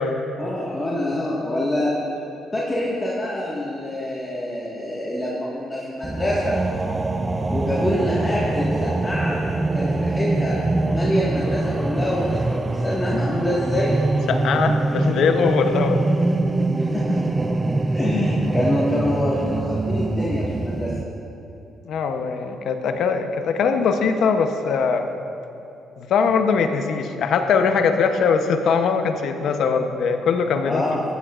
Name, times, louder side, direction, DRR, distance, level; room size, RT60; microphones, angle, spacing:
voice 1, 0.4-1.9 2.5-6.6 7.5-10.6 10.9-13.9 16.8-17.3 17.9-20.9 30.6-31.0, left 1 dB, 20° left, -7 dB, 1.7 m, -26 dB
sound 1, 6.0-21.0, right 2 dB, 20° right, 0.4 m, -23 dB
voice 2, 14.3-16.0 21.8-25.1 26.0-31.0, left 5 dB, 70° left, 6 dB, 0.8 m, -21 dB
15.5 x 10.5 x 2.5 m, 2.9 s
cardioid pair, 80°, 0 cm